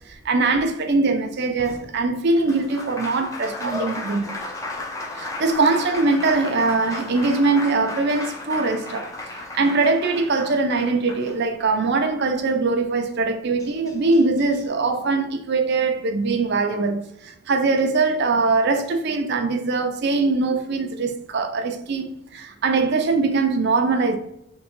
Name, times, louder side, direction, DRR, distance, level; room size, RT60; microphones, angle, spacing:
voice 1, 0.2-4.3 5.2-9.1 9.5-17.1 17.5-24.2, right 3 dB, 55° right, 0.5 m, -22 dB
Applause, 1.6-11.8 13.2-13.3 13.6-14.6, left 2 dB, 15° left, 0.5 m, -35 dB
3.6 x 3.0 x 2.9 m
head